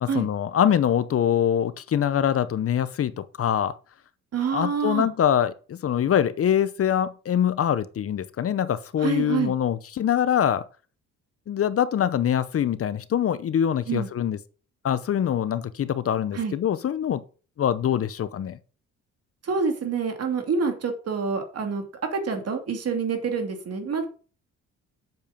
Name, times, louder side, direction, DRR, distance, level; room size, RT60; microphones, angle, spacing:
voice 1, 0.0-3.7 4.5-10.7 11.5-14.4 14.8-17.2 17.6-18.6, left 9 dB, 50° left, 0.7 m, -24 dB
voice 2, 4.3-5.1 9.0-9.5 13.9-14.1 16.3-16.6 19.4-21.8 22.1-24.1, right 5 dB, 55° right, 2.8 m, -27 dB
8.2 x 6.9 x 5.1 m
cardioid pair, 90°, 30 cm